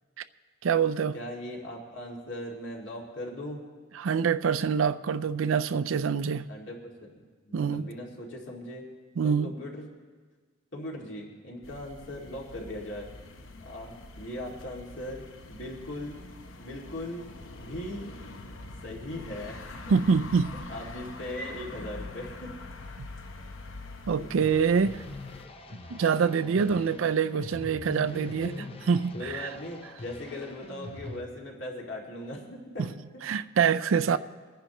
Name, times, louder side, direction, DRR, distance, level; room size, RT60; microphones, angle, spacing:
voice 1, 0.6-1.2 4.0-6.5 7.5-7.9 9.2-9.5 19.9-20.5 23.0-23.1 24.1-25.0 25.9-28.5 28.9-29.5 32.8-32.9 33.2-34.2, right 6 dB, 85° right, 13 dB, 0.4 m, -25 dB
voice 2, 1.1-3.6 6.5-6.8 7.4-8.8 9.2-9.9 10.7-13.1 13.6-16.2 16.6-17.2 17.6-18.1 18.8-20.2 20.7-22.5 24.2-24.5 26.4-27.0 28.1-28.7 29.1-32.9 33.1-33.2, left 1 dB, 70° left, -2 dB, 2.2 m, -39 dB
sound 1, 11.6-25.5, left 2 dB, 85° left, 0.9 m, -44 dB
sound 2, 24.4-31.2, left 2 dB, 30° left, 0.6 m, -44 dB
24.0 x 10.0 x 3.0 m, 1.4 s
head